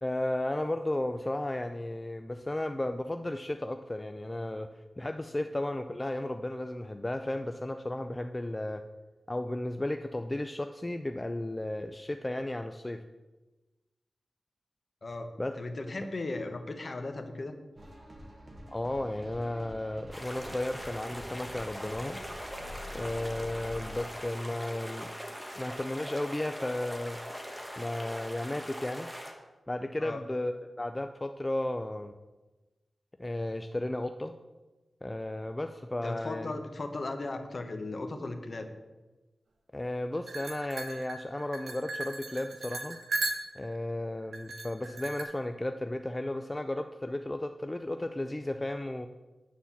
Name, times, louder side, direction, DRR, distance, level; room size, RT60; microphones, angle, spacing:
voice 1, 0.0-4.7 5.0-8.8 9.3-13.0 15.4-15.6 18.7-22.2 22.9-25.1 25.6-27.2 27.8-29.1 29.7-32.1 33.2-34.3 35.0-36.5 39.7-43.0 43.5-49.1, left 1 dB, 20° left, 7 dB, 0.4 m, -34 dB
voice 2, 15.6-17.6 30.0-30.2 36.0-38.7, left 2 dB, 45° left, 7 dB, 0.9 m, -37 dB
sound 1, 17.8-24.0, left 1 dB, 40° right, 1.7 m, -47 dB
sound 2, 20.1-29.3, equal, ahead, 1.3 m, -41 dB
sound 3, 40.3-43.8 44.3-45.2, right 2 dB, 75° right, 1.1 m, -36 dB
9.3 x 4.3 x 7.1 m, 1.2 s
wide cardioid pair, 100°, 0 cm